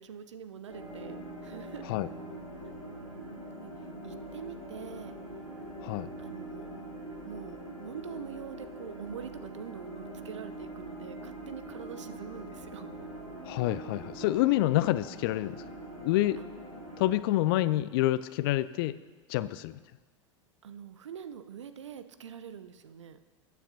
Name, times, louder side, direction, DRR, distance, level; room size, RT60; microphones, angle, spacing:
voice 1, 0.0-1.9 3.6-3.7 4.0-5.2 6.2-6.7 7.2-12.9 16.4-16.5 20.6-23.2, right 8 dB, 70° right, 11 dB, 0.7 m, -44 dB
sound 1, 0.7-17.1, right 1 dB, 85° right, 3.3 m, -43 dB
voice 2, 13.4-15.6 16.0-16.4 17.0-18.9 19.3-19.7, left 15 dB, 50° left, 16 dB, 0.5 m, -27 dB
21.0 x 9.4 x 2.8 m, 1.3 s
figure-of-eight pair, 85°, 16 cm